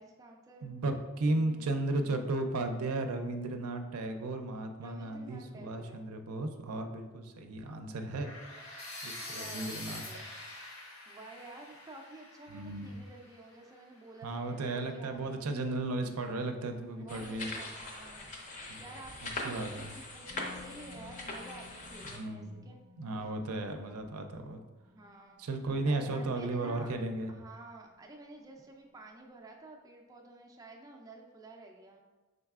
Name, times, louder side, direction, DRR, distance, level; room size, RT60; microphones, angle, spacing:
voice 1, 0.0-0.8 1.3-1.7 4.8-6.1 9.3-10.3 11.1-15.4 16.7-18.3 18.8-22.8 24.9-25.4 25.9-26.9 27.3-32.0, right 2 dB, 15° right, 0 dB, 0.3 m, -51 dB
voice 2, 0.6-8.3 9.0-10.2 12.5-13.0 14.2-17.5 18.7-18.8 19.2-19.9 22.1-22.7 23.0-24.6 25.4-27.3, right 2 dB, 85° right, 6 dB, 0.5 m, -35 dB
sound 1, 8.2-14.2, left 2 dB, 85° left, 1.2 m, -46 dB
sound 2, 17.1-22.2, left 2 dB, 35° left, 0.6 m, -42 dB
Musical instrument, 20.3-28.2 28.5-28.6, left 5 dB, 60° left, 0.8 m, -57 dB
5.4 x 3.8 x 2.4 m, 1.2 s
head